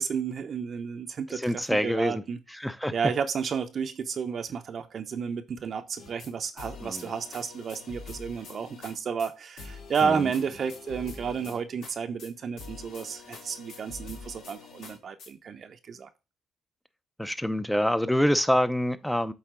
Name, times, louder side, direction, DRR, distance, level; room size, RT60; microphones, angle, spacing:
voice 1, 0.0-2.4 2.9-16.1, right 6 dB, 55° right, 0.6 m, -32 dB
voice 2, 1.3-2.2 2.5-2.9 6.8-7.1 10.0-10.3 17.2-19.3, equal, 5° left, 0.5 m, -26 dB
sound 1, 6.0-6.3 6.6-8.9 9.2-9.3 9.6-11.9 12.2-12.3 12.6-15.3, left 4 dB, 80° left, 1.8 m, -45 dB
8.0 x 3.8 x 3.7 m
cardioid pair, 90°, 0 cm